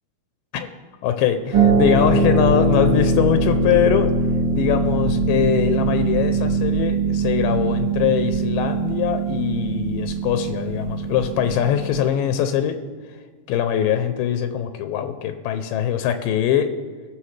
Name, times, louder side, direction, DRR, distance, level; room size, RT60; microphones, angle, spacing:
voice 1, 1.0-4.1 4.5-12.8 13.5-16.7, left 9 dB, 85° left, 8 dB, 2.3 m, -22 dB
Harp, 1.5-12.1, right 3 dB, 40° right, 2.5 m, -21 dB
18.5 x 6.8 x 3.2 m, 1.5 s
omnidirectional pair, 3.8 m